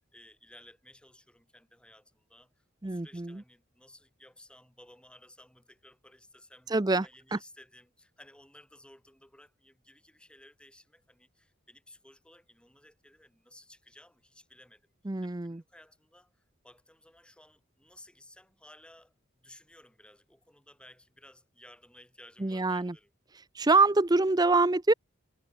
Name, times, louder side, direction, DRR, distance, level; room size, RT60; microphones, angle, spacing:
voice 1, 0.0-23.1, left 1 dB, 5° left, 7.4 m, -57 dB
voice 2, 2.8-3.4 6.7-7.0 15.1-15.6 22.4-22.9 23.6-24.9, right 3 dB, 20° right, 0.6 m, -25 dB
head